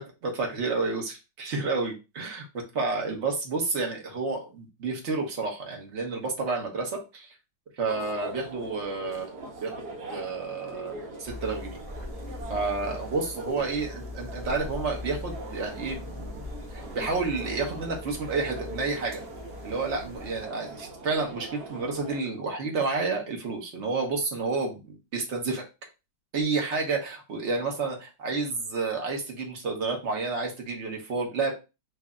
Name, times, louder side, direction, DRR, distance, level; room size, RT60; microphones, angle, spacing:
voice 1, 0.0-2.4 2.7-7.3 7.8-9.7 10.1-11.8 12.5-16.4 16.9-19.2 19.6-25.6 26.3-31.5, right 4 dB, 45° right, 0 dB, 1.1 m, -30 dB
sound 1, 7.9-22.2, right 2 dB, 60° right, 1.5 m, -42 dB
sound 2, 11.3-20.5, left 2 dB, 15° right, 1.1 m, -41 dB
3.3 x 2.7 x 3.5 m, 0.28 s
omnidirectional pair, 2.1 m